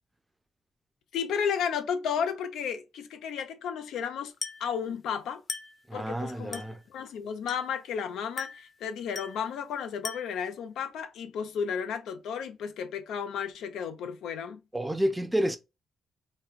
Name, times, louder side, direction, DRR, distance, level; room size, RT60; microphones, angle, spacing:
voice 1, 1.1-4.3 4.6-5.4 5.9-6.6 6.9-14.6, left 7 dB, 90° left, 0.6 m, -33 dB
Glass, 4.4-4.8 5.5-5.8 6.5-6.8 7.5-7.8 8.4-8.7 9.1-9.5 10.0-10.5, left 4 dB, 30° left, 0.7 m, -39 dB
voice 2, 5.9-6.8 14.7-15.6, equal, 10° right, 0.5 m, -29 dB
4.2 x 2.2 x 2.3 m
cardioid pair, 125°, 0 cm